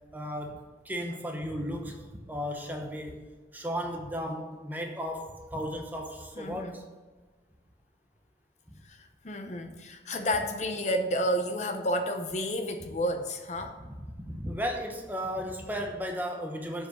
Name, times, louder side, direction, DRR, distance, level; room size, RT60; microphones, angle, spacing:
voice 1, 0.1-3.2 3.5-6.8 8.7-8.8 13.6-16.9, equal, 10° right, 3 dB, 0.8 m, -35 dB
voice 2, 6.4-6.8 8.8-13.8, equal, 40° left, 6 dB, 0.7 m, -31 dB
7.5 x 4.7 x 7.1 m, 1.3 s
head